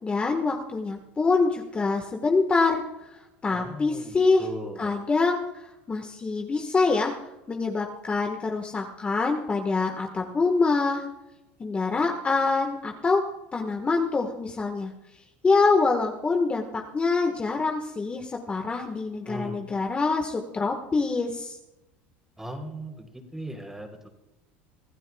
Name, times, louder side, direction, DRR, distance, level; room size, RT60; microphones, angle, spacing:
voice 1, 0.0-2.8 3.1-4.5 4.8-7.1 7.5-11.0 11.6-13.2 13.5-14.9 15.4-21.6, left 4 dB, 20° left, 3 dB, 1.4 m, -25 dB
voice 2, 3.5-4.9 19.2-19.6 22.4-23.1 23.3-24.1, right 1 dB, 5° right, 4 dB, 3.4 m, -38 dB
25.5 x 15.0 x 2.3 m, 0.98 s
supercardioid pair, 105°, 6 cm